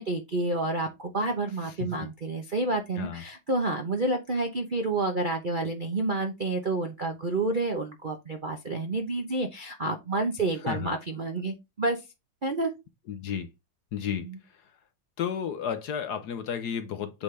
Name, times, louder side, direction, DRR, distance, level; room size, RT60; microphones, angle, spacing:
voice 1, 0.0-12.0 12.4-12.7 14.2-14.4, right 2 dB, 45° right, 0.6 m, -29 dB
voice 2, 13.1-13.5 13.9-14.2 15.2-17.2, left 8 dB, 60° left, 1.3 m, -32 dB
8.4 x 3.8 x 3.3 m
omnidirectional pair, 2.1 m